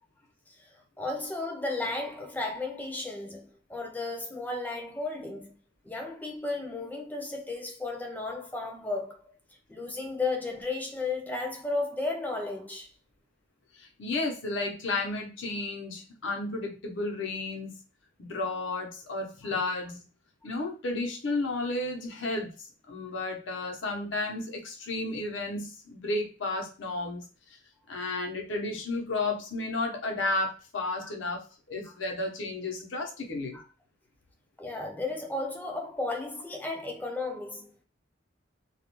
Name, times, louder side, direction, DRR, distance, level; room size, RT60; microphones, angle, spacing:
voice 1, 1.0-5.5 5.8-9.3 9.7-12.9 19.4-19.5 20.4-20.6 31.0-31.1 31.8-31.9 33.5-33.6 34.6-37.8, left 3 dB, 10° left, 0.4 m, -34 dB
voice 2, 13.8-17.8 18.2-20.0 20.4-27.6 27.9-33.6, left 2 dB, 85° left, 0.8 m, -33 dB
2.4 x 2.1 x 2.9 m
head